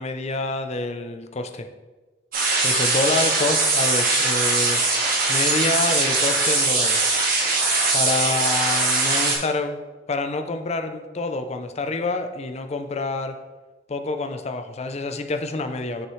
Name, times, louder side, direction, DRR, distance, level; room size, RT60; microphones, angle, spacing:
voice 1, 0.0-1.7 2.6-4.8 5.3-7.1 7.9-9.8 10.1-13.4 13.9-16.1, left 3 dB, 35° left, 7 dB, 0.5 m, -27 dB
sound 1, 2.3-9.3, right 3 dB, 55° right, 1.8 m, -21 dB
7.1 x 6.4 x 3.1 m, 1.2 s
head